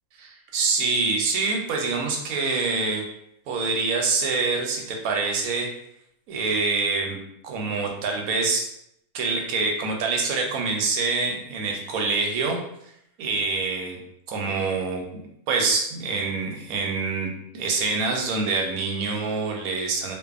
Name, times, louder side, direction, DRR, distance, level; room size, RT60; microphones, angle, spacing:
voice 1, 0.2-3.0 3.5-5.7 6.3-7.2 7.4-8.7 9.1-12.6 13.2-14.0 14.3-15.0 15.5-20.1, right 4 dB, 80° right, 1 dB, 1.0 m, -25 dB
2.6 x 2.4 x 2.3 m, 0.76 s
omnidirectional pair, 1.5 m